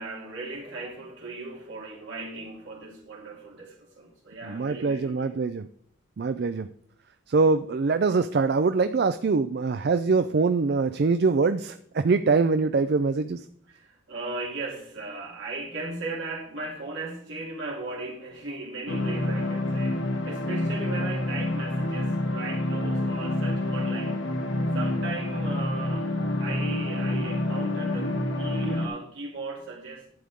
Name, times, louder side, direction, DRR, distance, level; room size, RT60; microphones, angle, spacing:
voice 1, 0.0-5.3 13.7-24.2 24.7-26.1 26.4-30.1, right 3 dB, 70° right, -2 dB, 3.2 m, -37 dB
voice 2, 4.4-5.7 6.2-6.7 7.3-13.5, right 4 dB, 50° right, 10 dB, 0.4 m, -23 dB
sound 1, 18.9-28.9, left 1 dB, 70° left, 1.3 m, -28 dB
11.0 x 8.5 x 3.6 m, 0.66 s
head